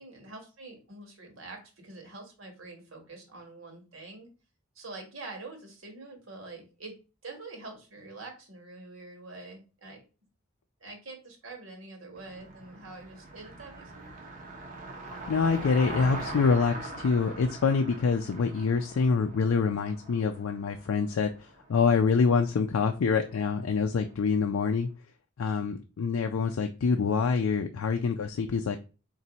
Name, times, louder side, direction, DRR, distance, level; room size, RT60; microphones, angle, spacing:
voice 1, 0.0-4.3 4.7-6.9 7.2-10.0 10.8-14.1, right 3 dB, 70° right, 3 dB, 1.4 m, -45 dB
Car passing by, 12.2-24.5, right 2 dB, 40° right, 0.7 m, -42 dB
voice 2, 15.3-21.3 21.7-24.9 25.4-28.8, left 5 dB, 80° left, 5 dB, 0.4 m, -26 dB
4.2 x 2.6 x 4.0 m, 0.33 s
head